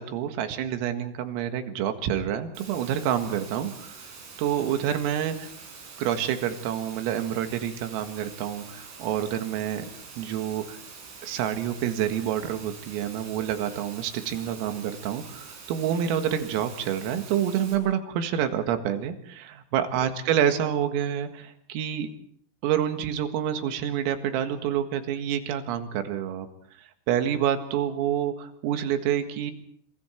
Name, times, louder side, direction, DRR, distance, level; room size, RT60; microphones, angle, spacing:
voice 1, 0.0-4.0 4.4-5.5 6.0-9.9 10.2-10.8 11.2-22.1 22.6-26.5 26.8-29.5, right 9 dB, 90° right, 7 dB, 4.4 m, -28 dB
Water, 2.6-17.8, right 5 dB, 70° right, 8.3 m, -45 dB
27.0 x 26.5 x 4.5 m, 0.66 s
omnidirectional pair, 5.9 m